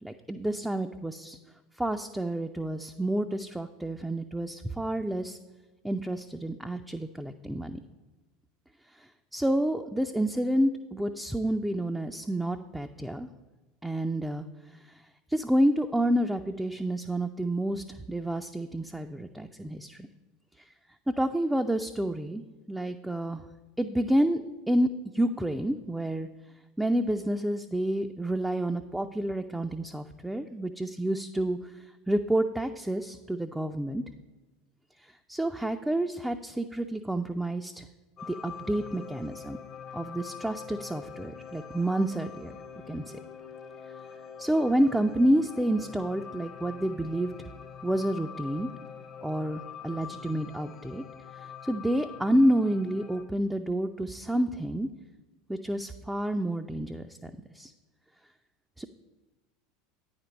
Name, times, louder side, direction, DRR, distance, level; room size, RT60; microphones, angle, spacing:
voice 1, 0.0-1.4 1.8-5.4 5.8-7.8 9.0-13.3 13.8-14.5 14.7-15.0 15.3-20.1 21.2-23.4 23.8-24.9 25.1-26.3 26.8-34.0 35.0-37.9 38.3-39.6 39.9-42.5 42.9-43.0 44.4-47.3 47.8-48.7 49.2-51.0 51.4-54.9 55.5-57.7 58.8-58.9, right 1 dB, 5° right, 5 dB, 0.3 m, -29 dB
sound 1, 38.2-53.2, left 7 dB, 35° left, 0.6 m, -44 dB
9.1 x 4.4 x 5.1 m, 1.2 s
figure-of-eight pair, 80°, 0 cm